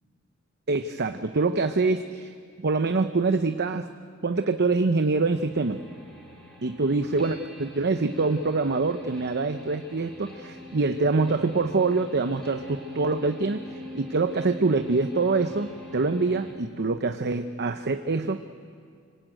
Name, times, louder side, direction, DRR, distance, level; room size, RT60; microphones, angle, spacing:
voice 1, 0.7-2.3 2.6-3.9 4.2-5.8 6.6-18.4, right 3 dB, 50° right, 8 dB, 0.8 m, -25 dB
sound 1, 5.2-16.5, left 1 dB, ahead, 5.1 m, -43 dB
25.5 x 24.5 x 9.0 m, 2.2 s
head